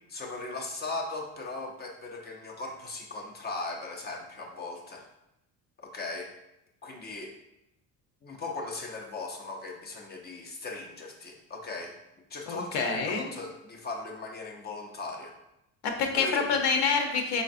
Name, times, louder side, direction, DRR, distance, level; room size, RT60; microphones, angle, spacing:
voice 1, 0.1-5.1 5.8-6.3 6.8-7.3 8.2-12.0 12.3-15.3 16.1-16.6, left 3 dB, 25° left, 2 dB, 0.4 m, -38 dB
voice 2, 12.5-13.3 15.8-17.4, left 5 dB, 85° left, 3 dB, 0.9 m, -27 dB
5.1 x 3.9 x 2.5 m, 0.86 s
cardioid pair, 160°, 41 cm